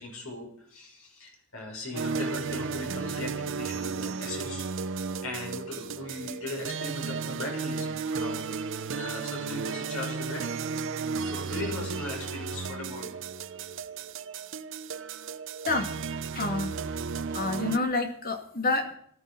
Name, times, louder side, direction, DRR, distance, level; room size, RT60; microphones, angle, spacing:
voice 1, 0.0-4.6 5.2-8.4 8.9-10.6 11.2-13.2, left 2 dB, 85° left, 1 dB, 6.0 m, -38 dB
sound 1, 1.9-17.8, right 5 dB, 60° right, 0.6 m, -34 dB
voice 2, 16.3-17.0 17.3-19.0, left 2 dB, 45° left, 5 dB, 2.4 m, -28 dB
19.0 x 12.0 x 5.5 m, 0.65 s
head